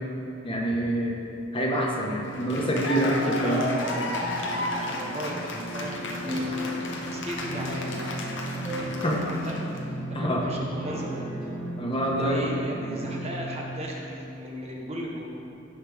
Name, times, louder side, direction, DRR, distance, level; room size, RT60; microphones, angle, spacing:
voice 1, 0.4-1.1 1.5-3.7 9.0-9.2 10.1-10.4 11.8-12.4, right 1 dB, 30° left, -2 dB, 1.3 m, -26 dB
Cheering / Applause, 2.2-9.8, left 2 dB, 65° left, 1.0 m, -33 dB
voice 2, 3.0-9.0 9.2-9.7 10.1-11.2 12.0-15.2, right 1 dB, 35° right, -2 dB, 1.2 m, -37 dB
sound 1, 3.8-13.8, right 1 dB, 50° left, 1.8 m, -37 dB
sound 2, 6.2-8.4 8.6-9.7 9.9-10.0 10.8-11.6, left 1 dB, 15° right, 2.2 m, -35 dB
15.5 x 5.8 x 3.5 m, 3.0 s
head